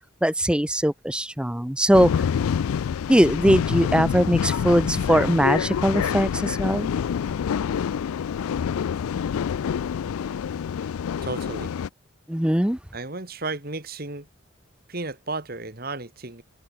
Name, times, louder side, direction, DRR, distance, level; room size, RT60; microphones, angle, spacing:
voice 1, 0.2-2.2 3.1-6.9 12.3-12.8, equal, 5° right, 0.7 m, -21 dB
sound 1, 1.9-11.9, left 7 dB, 85° left, 0.3 m, -26 dB
voice 2, 11.2-11.7 12.9-14.3 14.9-16.4, right 3 dB, 45° right, 2.2 m, -33 dB
head